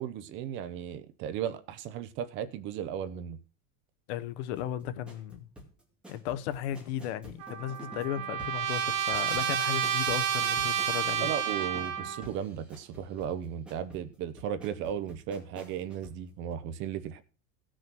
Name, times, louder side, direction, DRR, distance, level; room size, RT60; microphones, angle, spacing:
voice 1, 0.0-3.4 11.2-17.2, right 9 dB, 30° right, 0.7 m, -35 dB
voice 2, 4.1-5.5 6.1-11.3, left 11 dB, 55° left, 1.0 m, -35 dB
sound 1, 4.6-16.2 16.5-16.6, equal, 5° right, 2.3 m, -50 dB
Trumpet, 7.4-12.3, right 9 dB, 45° right, 1.6 m, -30 dB
16.0 x 6.4 x 6.1 m
supercardioid pair, 175°, 39 cm